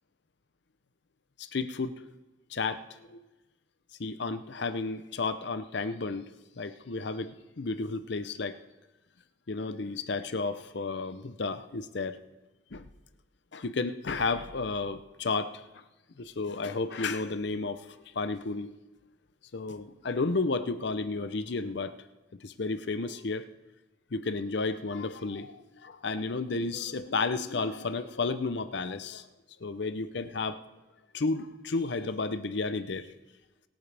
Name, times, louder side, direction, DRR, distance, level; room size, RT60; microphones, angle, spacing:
voice 1, 1.4-2.0 2.5-3.2 4.0-6.3 6.6-8.6 9.5-12.2 12.7-12.9 13.5-15.6 16.2-18.7 19.5-22.0 22.4-23.5 24.1-29.3 29.6-30.6 31.1-33.1, left 3 dB, 55° left, 12 dB, 0.6 m, -32 dB
23.0 x 8.9 x 3.4 m, 1.1 s
head